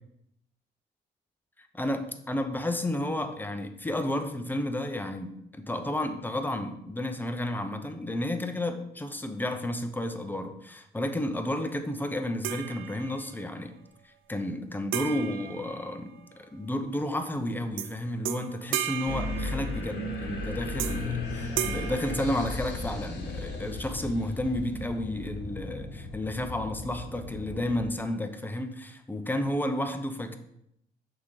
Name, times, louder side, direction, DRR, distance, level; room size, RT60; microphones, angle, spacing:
voice 1, 1.7-13.7 14.0-30.4, left 1 dB, 10° left, 7 dB, 0.7 m, -32 dB
sound 1, 12.4-13.4 14.9-16.5 17.8-17.9 18.2-20.1 20.8-21.2 21.6-23.0, right 13 dB, 80° right, 0.5 m, -35 dB
sound 2, 19.1-27.9, left 2 dB, 60° left, 1.4 m, -35 dB
6.3 x 3.7 x 4.8 m, 0.77 s
cardioid pair, 90°, 20 cm